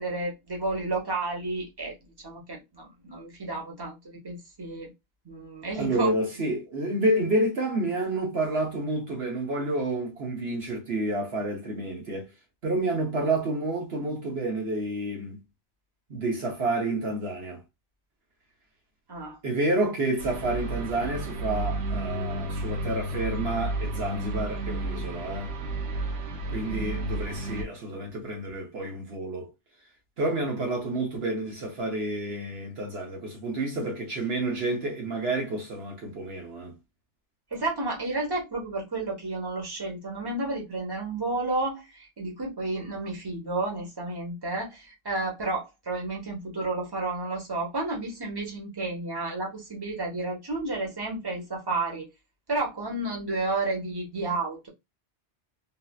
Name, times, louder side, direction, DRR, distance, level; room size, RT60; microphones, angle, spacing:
voice 1, 0.0-1.9 2.2-4.9 5.2-6.1 19.1-19.4 37.5-52.1 52.5-54.7, right 2 dB, 20° right, 1.2 m, -31 dB
voice 2, 5.8-12.3 12.6-15.4 16.1-17.6 19.4-25.5 26.5-29.5 30.2-36.7, right 2 dB, 65° right, 1.2 m, -29 dB
sound 1, 20.2-27.6, right 1 dB, 90° right, 1.0 m, -32 dB
3.7 x 2.7 x 2.3 m
omnidirectional pair, 1.2 m